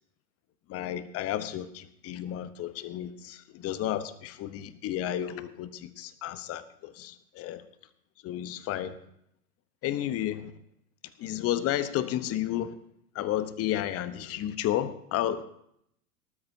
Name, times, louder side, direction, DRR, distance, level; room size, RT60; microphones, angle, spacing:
voice 1, 0.7-7.6 8.2-8.9 9.8-10.5 11.2-12.7 13.1-15.4, left 12 dB, 30° left, 13 dB, 1.0 m, -32 dB
19.0 x 13.0 x 2.8 m, 0.74 s
figure-of-eight pair, 90°, 45 cm